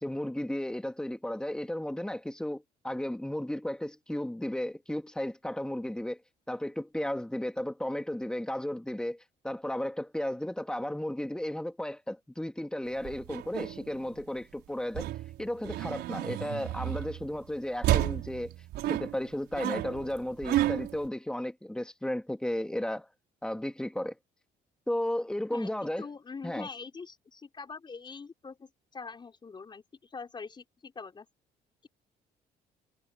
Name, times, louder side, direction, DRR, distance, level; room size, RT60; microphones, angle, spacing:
voice 1, 0.0-6.2 6.5-9.2 9.4-15.1 15.4-18.5 18.9-23.1 23.4-24.1 24.9-26.1 26.4-26.7, left 1 dB, 5° left, 2.3 m, -34 dB
sound 1, 12.9-14.4 14.9-17.4 17.8-21.1, right 14 dB, 80° right, 4.7 m, -32 dB
voice 2, 25.5-29.8 30.1-31.3, left 4 dB, 25° left, 4.9 m, -44 dB
cardioid pair, 110°, 17 cm